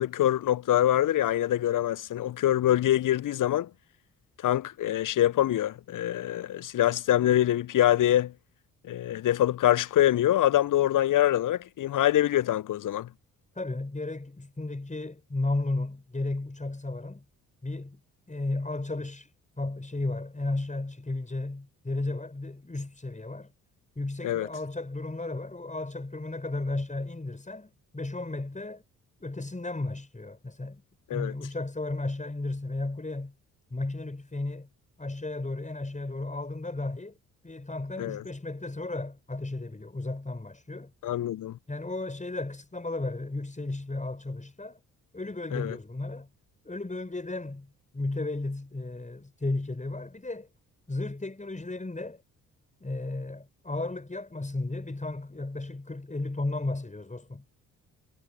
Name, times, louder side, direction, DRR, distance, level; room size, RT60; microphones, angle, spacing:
voice 1, 0.0-3.7 4.4-8.3 8.9-13.1 24.2-24.5 31.1-31.3 38.0-38.2 41.0-41.6 45.5-45.8, left 12 dB, 45° left, 1.2 m, -24 dB
voice 2, 13.6-17.2 17.6-18.0 18.3-19.3 19.6-23.5 24.0-28.8 29.2-30.8 31.1-33.3 33.7-34.7 35.0-37.2 37.4-40.9 41.7-44.8 45.1-46.3 46.6-50.5 50.9-52.2 52.8-57.4, left 2 dB, 15° left, 7.4 m, -34 dB
figure-of-eight pair, 40°, 43 cm